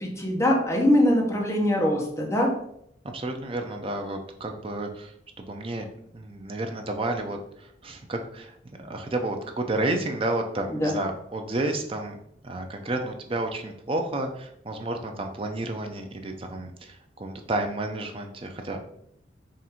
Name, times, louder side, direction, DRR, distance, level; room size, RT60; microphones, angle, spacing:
voice 1, 0.0-2.5 10.7-11.0, left 1 dB, 15° left, -2 dB, 0.8 m, -22 dB
voice 2, 3.1-5.8 6.1-12.2 12.4-18.8, right 2 dB, 30° right, 4 dB, 0.5 m, -31 dB
3.7 x 2.6 x 4.2 m, 0.72 s
head